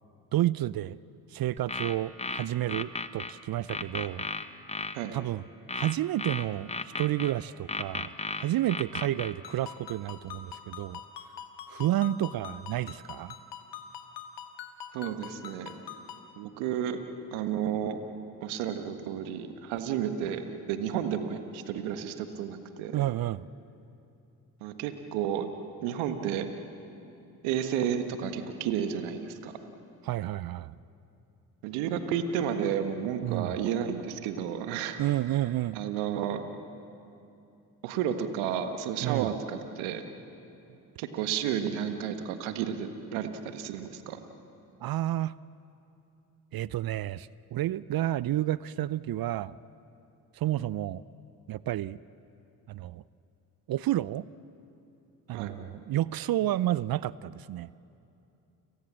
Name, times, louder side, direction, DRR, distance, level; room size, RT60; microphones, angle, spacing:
voice 1, 0.3-1.0 1.3-4.3 5.1-5.4 5.7-8.1 8.4-11.0 11.7-13.3 22.9-23.5 30.0-30.8 33.2-33.5 35.0-35.8 39.0-39.3 44.8-45.4 46.5-49.5 50.4-51.0 51.5-52.0 52.7-53.0 53.7-54.3 55.3-57.7, right 14 dB, 50° right, 20 dB, 0.6 m, -30 dB
sound 1, 1.6-3.3 3.7-5.0 5.7-7.3 7.7-9.3, left 3 dB, 15° left, 1.2 m, -34 dB
Ringtone, 9.4-16.3, left 8 dB, 60° left, 2.0 m, -45 dB
voice 2, 14.9-15.7 16.4-17.0 17.3-18.0 18.4-23.0 24.6-25.5 25.8-26.5 27.4-29.5 31.6-35.0 35.3-35.4 35.7-36.5 37.8-40.0 41.0-44.2 55.3-55.5, right 9 dB, 75° right, 8 dB, 1.6 m, -32 dB
29.5 x 18.5 x 7.5 m, 2.8 s
hypercardioid pair, 50°, 48 cm